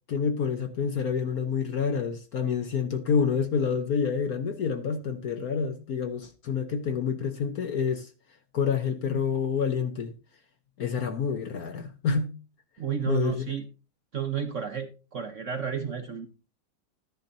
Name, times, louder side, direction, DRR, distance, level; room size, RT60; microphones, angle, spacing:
voice 1, 0.1-8.1 8.5-10.1 10.8-12.3 13.0-13.5, left 6 dB, 60° left, 1.1 m, -28 dB
voice 2, 12.8-13.7 14.1-16.3, right 8 dB, 50° right, 0.9 m, -32 dB
13.0 x 10.5 x 2.6 m
omnidirectional pair, 2.2 m